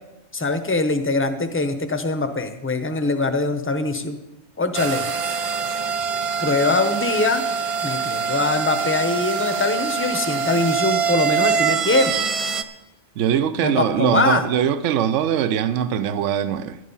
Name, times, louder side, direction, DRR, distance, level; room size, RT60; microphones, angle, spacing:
voice 1, 0.3-4.2 4.6-5.1 6.4-7.4 7.8-12.3 13.6-14.4, left 3 dB, 15° left, 8 dB, 0.6 m, -22 dB
sound 1, 4.7-12.6, right 6 dB, 55° right, 0.3 m, -24 dB
voice 2, 13.2-16.8, right 9 dB, 75° right, 13 dB, 0.9 m, -22 dB
12.0 x 9.3 x 5.5 m, 0.96 s
omnidirectional pair, 1.3 m